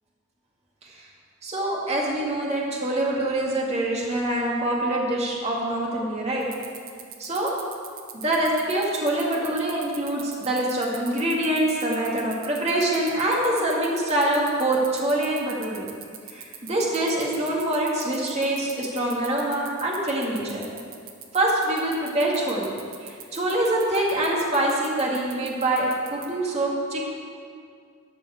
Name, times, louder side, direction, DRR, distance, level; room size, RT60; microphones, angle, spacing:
voice 1, 1.4-6.5 7.2-7.5 8.2-15.9 16.3-20.6 21.3-22.7 23.0-27.1, right 1 dB, 30° right, -3 dB, 2.1 m, -25 dB
sound 1, 6.4-26.3, right 10 dB, 70° right, 1.2 m, -40 dB
12.5 x 6.2 x 8.2 m, 2.2 s
head